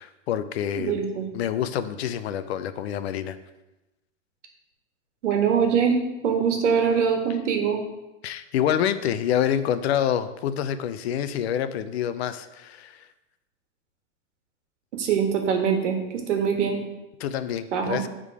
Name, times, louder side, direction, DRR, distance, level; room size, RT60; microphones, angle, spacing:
voice 1, 0.0-1.0 1.3-3.4 8.2-13.1 17.2-18.1, left 9 dB, 60° left, 12 dB, 0.6 m, -27 dB
voice 2, 0.8-1.2 5.2-6.0 6.2-7.8 14.9-16.0 16.3-16.8 17.7-18.0, right 7 dB, 80° right, 3 dB, 1.5 m, -23 dB
8.3 x 3.7 x 4.8 m, 1.0 s
supercardioid pair, 165°, 36 cm